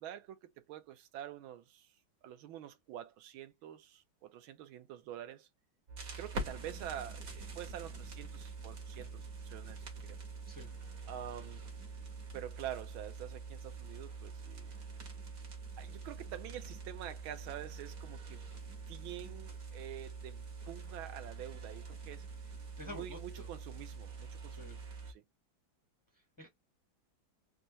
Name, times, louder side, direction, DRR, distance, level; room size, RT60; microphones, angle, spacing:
voice 1, 0.0-1.9 2.2-5.5 6.2-10.2 11.1-11.6 12.3-14.7 15.8-18.4 18.9-22.2 22.8-24.8 25.1-25.2, right 11 dB, 85° right, 1.5 m, -47 dB
sound 1, 5.9-25.1, right 3 dB, 50° right, 1.8 m, -45 dB
voice 2, 22.8-23.4 24.6-24.7 26.4-26.5, left 2 dB, 25° left, 0.4 m, -48 dB
4.3 x 2.3 x 2.7 m
omnidirectional pair, 2.2 m